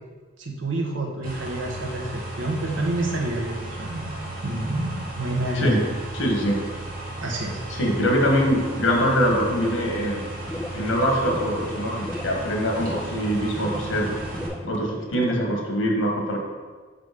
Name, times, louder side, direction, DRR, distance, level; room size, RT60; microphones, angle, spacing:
voice 1, 0.4-5.8 7.2-7.6 13.6-13.7, right 1 dB, 90° right, 1 dB, 1.2 m, -28 dB
sound 1, 1.2-14.5, right 2 dB, 50° right, 1.7 m, -35 dB
voice 2, 6.1-6.6 7.7-10.2 10.7-14.2 14.6-16.4, equal, 80° left, 1 dB, 1.4 m, -23 dB
sound 2, 10.4-15.5, left 1 dB, 5° left, 0.3 m, -36 dB
5.6 x 5.1 x 5.2 m, 1.4 s
head